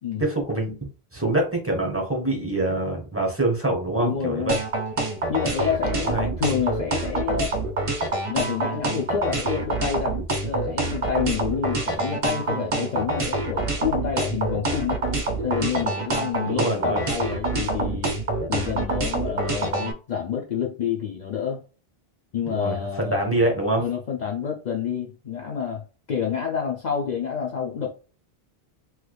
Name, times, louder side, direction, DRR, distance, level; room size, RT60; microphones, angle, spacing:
voice 1, 0.2-0.8 1.1-4.6 6.0-6.3 16.5-17.0 22.4-23.8, right 2 dB, 15° right, 1 dB, 0.9 m, -25 dB
voice 2, 4.0-4.6 5.3-7.5 8.3-15.0 15.4-18.2 18.5-21.6 22.3-23.3 23.8-27.9, left 7 dB, 55° left, 0 dB, 0.6 m, -28 dB
sound 1, 4.5-19.9, right 2 dB, 35° right, 0.6 m, -26 dB
3.3 x 3.1 x 2.2 m, 0.35 s
omnidirectional pair, 1.1 m